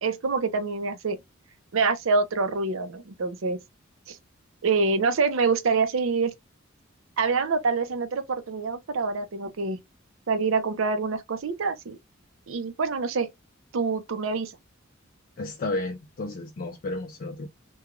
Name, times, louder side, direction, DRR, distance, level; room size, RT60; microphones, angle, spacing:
voice 1, 0.0-1.2 1.7-3.6 4.1-4.2 4.6-6.3 7.2-9.8 10.3-12.0 12.5-13.3 13.7-14.5, right 4 dB, 70° right, 0.6 m, -26 dB
voice 2, 15.4-17.5, left 2 dB, 45° left, 0.4 m, -32 dB
3.0 x 2.3 x 2.3 m
head